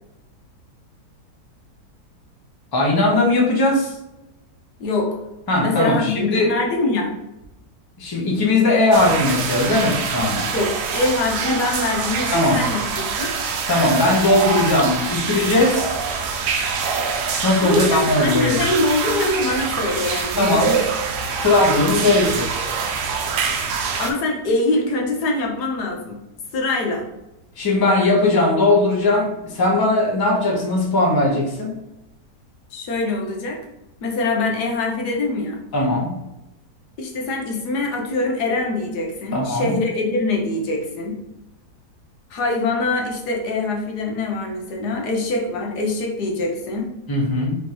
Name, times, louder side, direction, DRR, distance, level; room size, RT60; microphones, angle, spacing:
voice 1, 2.7-4.0 5.5-6.5 8.0-10.5 12.3-12.6 13.7-16.0 17.4-18.6 20.4-20.7 21.4-22.5 27.6-31.8 35.7-36.2 39.3-39.8 47.1-47.6, left 2 dB, 20° left, -2 dB, 0.6 m, -19 dB
voice 2, 4.8-5.2 5.6-7.1 10.5-13.3 17.6-20.8 24.0-26.2 26.5-27.0 32.7-33.6 34.0-35.6 37.0-41.2 42.3-46.9, left 2 dB, 75° left, 1 dB, 1.4 m, -23 dB
sound 1, 8.9-24.1, right 5 dB, 75° right, 1.2 m, -25 dB
4.9 x 3.1 x 2.9 m, 0.91 s
omnidirectional pair, 1.8 m